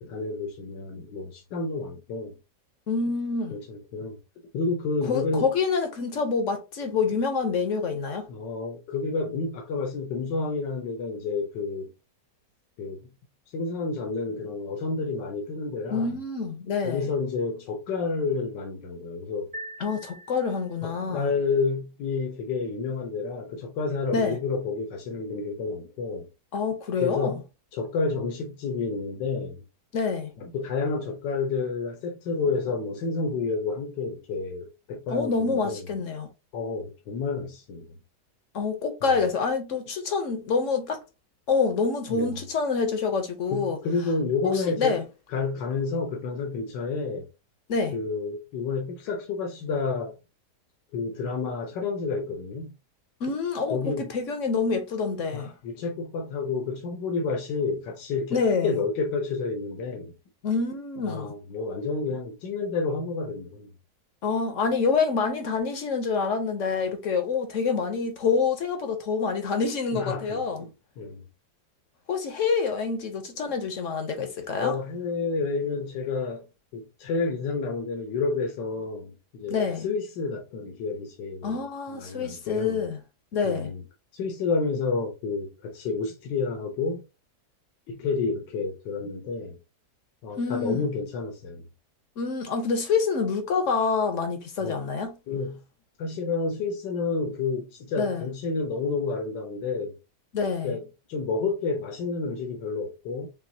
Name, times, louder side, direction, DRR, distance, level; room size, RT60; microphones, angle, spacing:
voice 1, 0.0-2.3 3.5-4.2 4.5-5.5 8.3-11.9 12.8-13.1 13.5-16.1 16.8-19.5 20.8-26.3 27.0-27.4 27.7-29.6 30.4-35.9 36.5-37.9 39.0-39.1 42.1-42.4 43.5-45.0 45.3-47.3 47.9-50.1 50.9-52.7 53.7-54.1 55.3-60.1 61.0-63.7 69.9-70.7 71.0-71.2 74.6-76.4 76.7-81.6 81.9-82.8 83.4-83.8 84.1-87.0 87.9-89.6 90.2-91.7 94.6-94.8 95.3-95.6 96.0-99.9 100.6-103.3, left 4 dB, 85° left, 1.5 m, -30 dB
voice 2, 2.9-3.6 5.0-8.3 15.9-17.1 19.8-21.3 24.1-24.4 26.5-27.4 29.9-30.3 35.1-36.3 38.5-41.0 41.5-43.8 44.4-45.0 47.7-48.0 53.2-55.5 58.3-58.7 60.4-61.3 64.2-70.6 72.1-74.7 79.5-79.9 81.4-83.0 83.3-83.7 90.4-90.8 92.2-95.1 98.0-98.2 100.3-100.8, left 5 dB, 60° left, 0.9 m, -27 dB
sound 1, 19.5-21.0, right 1 dB, 15° right, 0.3 m, -42 dB
5.9 x 2.4 x 2.6 m
omnidirectional pair, 1.9 m